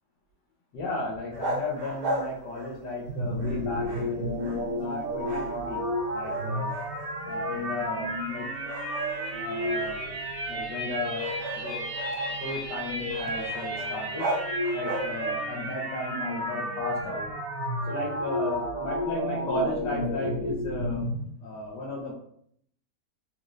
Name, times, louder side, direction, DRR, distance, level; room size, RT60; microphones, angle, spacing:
voice 1, 0.7-4.4 4.8-5.8 6.1-6.7 7.3-8.5 9.3-10.1 10.5-11.3 11.5-11.9 12.4-14.3 14.7-17.3 17.9-21.1 21.4-22.1, left 2 dB, 75° left, -6 dB, 1.6 m, -34 dB
sound 1, 1.3-3.1 3.4-4.9 5.2-5.9 6.2-7.4 7.9-8.0 8.6-15.5, right 1 dB, 70° right, 1.2 m, -37 dB
sound 2, 3.1-21.2, equal, 50° right, 0.7 m, -32 dB
4.0 x 3.4 x 2.5 m, 0.66 s
omnidirectional pair, 1.9 m